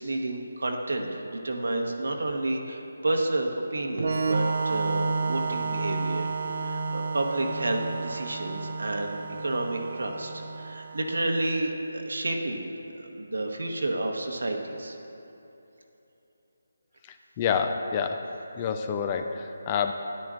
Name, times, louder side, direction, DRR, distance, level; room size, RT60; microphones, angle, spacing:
voice 1, 0.0-12.7 13.0-15.0, right 2 dB, 85° right, 2 dB, 1.2 m, -30 dB
Organ, 4.0-11.5, right 4 dB, 60° right, 0.7 m, -31 dB
voice 2, 17.1-18.3 18.6-19.9, left 6 dB, 20° left, 6 dB, 0.3 m, -28 dB
13.0 x 10.5 x 2.5 m, 3.0 s
figure-of-eight pair, 170°, 0 cm